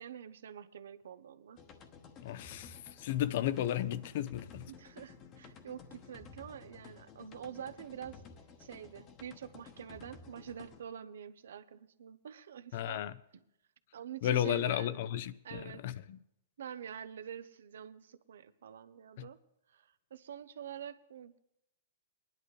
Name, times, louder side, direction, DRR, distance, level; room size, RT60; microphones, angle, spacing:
voice 1, 0.0-1.6 4.7-8.2 8.6-13.0 13.9-15.0 15.4-15.9 16.6-19.4 19.7-21.4, right 9 dB, 80° right, 0.7 m, -46 dB
sound 1, 1.6-10.8, left 5 dB, 30° left, 1.1 m, -54 dB
voice 2, 2.2-4.6 12.7-13.1 14.2-16.2 19.2-19.3, left 11 dB, 55° left, 0.6 m, -34 dB
20.0 x 10.5 x 3.2 m
hypercardioid pair, 145°, 0 cm